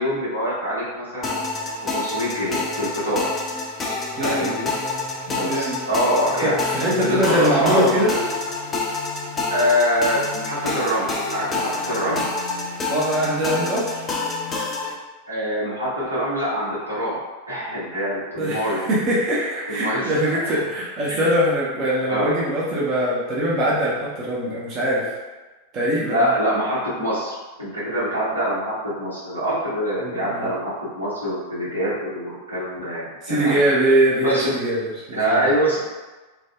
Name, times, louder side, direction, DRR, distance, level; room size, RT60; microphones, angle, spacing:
voice 1, 0.0-1.4 1.8-3.3 4.2-4.7 5.3-6.5 6.9-8.3 9.5-12.2 15.3-17.2 17.5-18.9 19.7-20.2 21.1-21.2 22.1-22.3 26.0-27.3 27.6-33.6 34.2-34.5 35.1-35.8, equal, 85° right, -10 dB, 1.0 m, -24 dB
sound 1, 1.2-14.9, left 3 dB, 20° left, 0.4 m, -28 dB
voice 2, 4.2-4.6 5.4-5.8 6.4-8.1 12.9-14.0 18.4-25.1 25.7-26.3 30.0-30.5 33.2-35.5, right 1 dB, 35° right, -7 dB, 0.6 m, -22 dB
2.5 x 2.2 x 2.2 m, 1.2 s
figure-of-eight pair, 90°, 0 cm